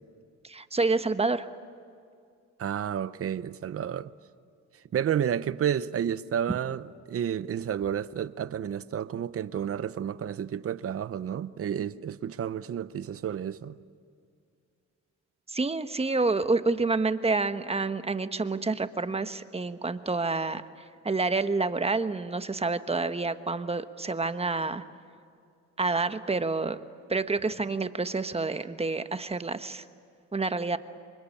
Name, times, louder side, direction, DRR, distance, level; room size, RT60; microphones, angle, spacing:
voice 1, 0.4-1.5 15.5-20.6 21.0-24.8 25.8-26.8 27.1-29.8 30.3-30.8, right 3 dB, 20° right, 1.2 m, -28 dB
voice 2, 2.6-4.1 4.9-13.8, right 9 dB, 50° right, 0.9 m, -31 dB
28.5 x 24.0 x 8.6 m
cardioid pair, 90°, 30 cm